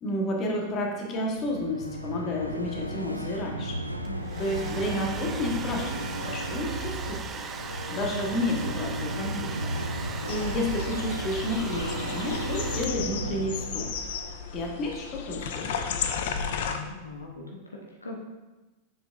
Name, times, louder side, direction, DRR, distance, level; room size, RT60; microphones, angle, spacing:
voice 1, 0.0-3.8 4.4-7.5 7.9-9.7 10.3-13.9 14.5-15.7, left 1 dB, 30° left, 0 dB, 1.3 m, -31 dB
sound 1, 1.2-15.3, right 1 dB, 85° right, 0.4 m, -34 dB
voice 2, 4.0-4.6 10.2-10.4 16.7-17.6 18.0-18.2, left 3 dB, 80° left, -1 dB, 0.9 m, -40 dB
Domestic sounds home sounds, 4.0-13.3, right 5 dB, 25° right, 0.4 m, -39 dB
sound 2, 10.3-16.8, left 7 dB, 55° left, 0.5 m, -34 dB
7.2 x 6.0 x 2.5 m, 1.1 s
figure-of-eight pair, 90°, 0 cm